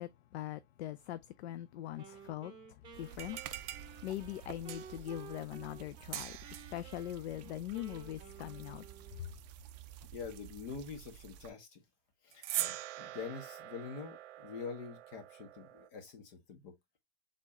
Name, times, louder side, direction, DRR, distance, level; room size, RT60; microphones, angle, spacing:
voice 1, 0.0-2.5 3.0-3.4 3.7-6.4 6.7-8.8, left 13 dB, 70° left, 0.5 m, -42 dB
Wind instrument woodwind instrument, 2.0-6.1 6.4-9.3, right 6 dB, 10° right, 1.6 m, -54 dB
sound 1, 2.9-11.5, right 11 dB, 40° right, 0.4 m, -52 dB
sound 2, 3.1-5.1 6.1-6.8 12.3-15.9, right 13 dB, 75° right, 0.7 m, -43 dB
voice 2, 10.1-11.8 12.2-16.7, left 5 dB, 50° left, 1.7 m, -45 dB
4.6 x 3.6 x 2.8 m
supercardioid pair, 160°, 35 cm